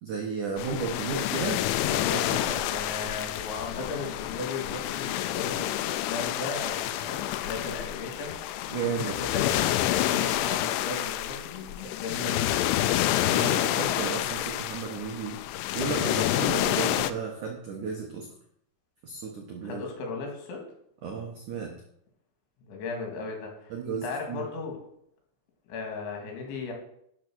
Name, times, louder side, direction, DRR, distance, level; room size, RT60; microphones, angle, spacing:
voice 1, 0.0-2.7 8.7-9.2 13.1-18.3 19.0-19.8 21.0-21.8 23.7-24.5, right 5 dB, 80° right, 1 dB, 1.7 m, -34 dB
sound 1, 0.6-17.1, left 14 dB, 85° left, 2.7 m, -28 dB
voice 2, 2.4-8.6 9.0-12.7 19.6-20.6 22.7-23.7 24.0-24.8 25.7-26.7, left 4 dB, 65° left, 1 dB, 4.5 m, -36 dB
12.0 x 7.0 x 6.3 m, 0.71 s
omnidirectional pair, 5.9 m